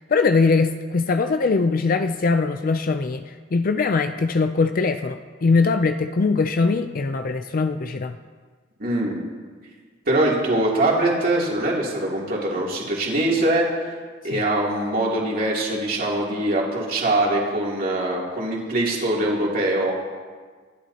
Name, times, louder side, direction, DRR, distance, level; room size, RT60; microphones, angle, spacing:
voice 1, 0.1-8.2 14.3-14.4, left 4 dB, 50° left, 8 dB, 0.5 m, -21 dB
voice 2, 8.8-9.2 10.1-13.7 14.2-19.9, right 1 dB, 50° right, -4 dB, 2.9 m, -22 dB
26.0 x 10.5 x 2.9 m, 1.5 s
head